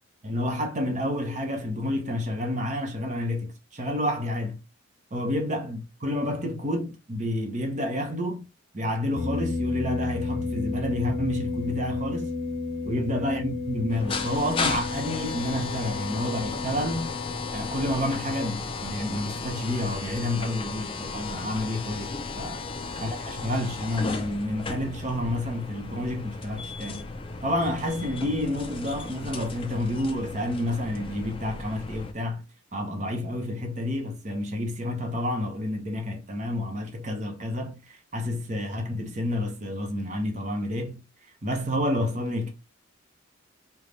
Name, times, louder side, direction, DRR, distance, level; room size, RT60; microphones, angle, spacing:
voice 1, 0.2-4.6 5.1-8.5 8.7-12.3 12.8-17.2 17.5-22.6 23.0-27.1 27.4-32.4 32.7-41.0 41.4-42.5, left 1 dB, 35° right, 0.8 m, -29 dB
sound 1, 9.1-18.2, left 3 dB, 60° left, 0.7 m, -32 dB
sound 2, 13.9-32.1, left 4 dB, 25° left, 0.3 m, -35 dB
3.3 x 2.3 x 3.9 m
head